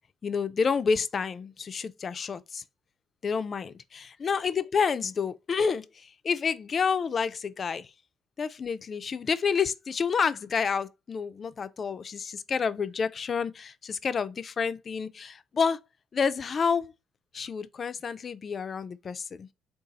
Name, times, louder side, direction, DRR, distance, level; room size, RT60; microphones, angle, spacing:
voice 1, 0.2-2.6 3.2-7.9 8.4-15.8 16.1-16.9 17.3-19.5, left 5 dB, 40° left, 0.3 m, -29 dB
4.0 x 2.3 x 3.8 m
cardioid pair, 110°, 0 cm